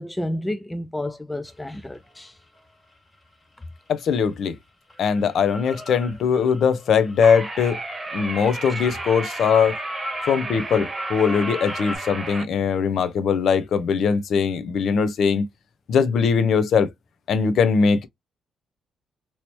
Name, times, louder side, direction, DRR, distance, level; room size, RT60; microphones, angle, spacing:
voice 1, 0.0-2.4 8.7-8.8 9.3-9.4, left 1 dB, 10° left, 0.4 m, -31 dB
sound 1, 1.5-4.5 4.9-12.0, equal, 25° left, 1.7 m, -40 dB
voice 2, 3.9-4.5 5.0-7.8 8.1-9.8 10.3-15.4 15.9-16.9 17.3-18.1, left 6 dB, 65° left, 0.6 m, -21 dB
sound 2, 7.2-12.4, right 2 dB, 20° right, 1.1 m, -32 dB
3.1 x 2.8 x 2.9 m
cardioid pair, 90°, 0 cm